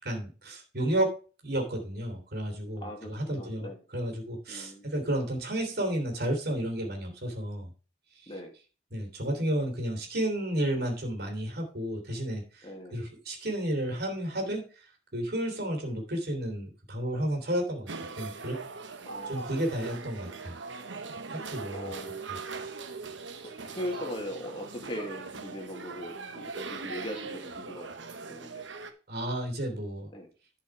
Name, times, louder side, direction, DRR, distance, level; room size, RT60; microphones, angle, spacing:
voice 1, 0.0-1.1 1.4-7.7 8.2-8.3 8.9-14.8 15.1-17.9 18.2-18.6 19.3-20.5 21.3-21.9 22.3-22.4 29.1-30.1, right 1 dB, 55° right, 2 dB, 3.2 m, -32 dB
voice 2, 2.8-3.8 4.5-4.9 8.3-8.5 12.6-13.1 19.0-19.4 21.7-22.2 23.7-27.9 28.3-28.6 30.1-30.3, left 1 dB, 25° left, 3 dB, 2.3 m, -39 dB
sound 1, 17.9-28.9, right 4 dB, 70° right, 1.1 m, -40 dB
11.0 x 5.5 x 4.8 m, 0.35 s
head